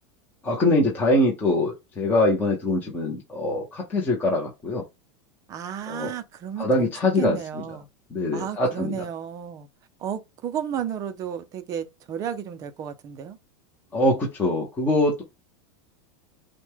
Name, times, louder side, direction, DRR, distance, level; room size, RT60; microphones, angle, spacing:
voice 1, 0.4-4.8 5.9-6.1 6.6-7.4 8.1-9.0 13.9-15.2, left 1 dB, 10° left, 0.8 m, -23 dB
voice 2, 5.5-7.9 8.3-9.7 10.0-13.4, right 9 dB, 20° right, 0.5 m, -33 dB
6.1 x 2.2 x 3.6 m
supercardioid pair, 175°, 15 cm